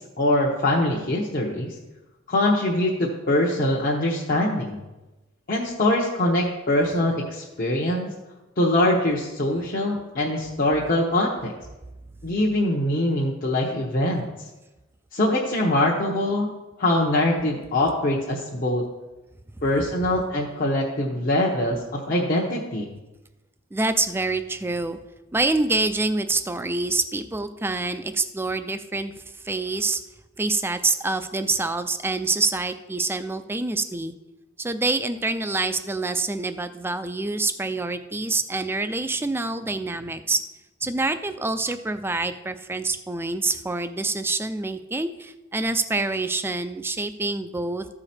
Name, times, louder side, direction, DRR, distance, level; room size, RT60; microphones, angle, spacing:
voice 1, 0.2-1.7 2.3-4.8 5.5-8.1 8.6-11.5 12.2-14.3 15.1-16.5 16.8-18.8 19.6-22.9, left 1 dB, 45° left, -3 dB, 1.0 m, -23 dB
voice 2, 23.7-25.0 25.3-30.0 30.4-34.2 34.6-40.4 40.8-47.9, right 3 dB, 10° right, 10 dB, 0.4 m, -26 dB
14.0 x 4.9 x 4.3 m, 1.1 s
head